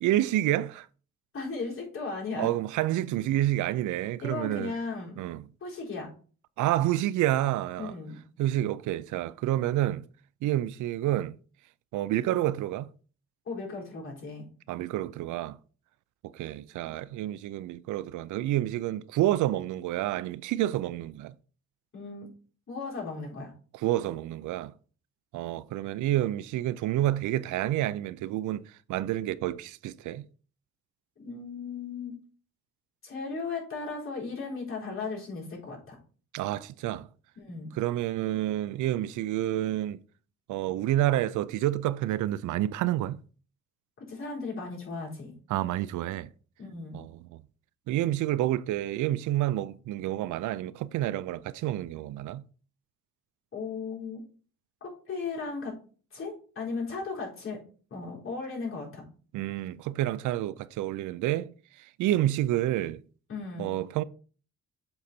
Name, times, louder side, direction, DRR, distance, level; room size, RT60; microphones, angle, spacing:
voice 1, 0.0-0.9 2.4-4.7 5.2-5.4 6.6-7.9 8.4-10.0 10.4-11.4 11.9-12.9 14.7-15.6 16.2-21.3 23.7-24.7 25.3-30.2 36.3-37.1 37.8-40.0 40.5-43.2 45.5-46.3 46.9-47.4 47.9-52.4 59.3-61.5 62.0-63.0 63.6-64.0, right 14 dB, 75° right, 0.5 m, -29 dB
voice 2, 1.3-2.5 4.2-5.2 5.6-6.1 7.8-8.2 13.5-14.5 21.9-22.3 22.7-23.5 31.2-32.1 33.0-36.0 37.4-37.7 44.0-45.4 46.6-47.0 53.5-54.2 54.8-55.7 56.1-57.6 57.9-59.0 63.3-63.7, left 4 dB, 45° left, 3.9 m, -36 dB
7.6 x 4.0 x 4.3 m
cardioid pair, 90°, 30 cm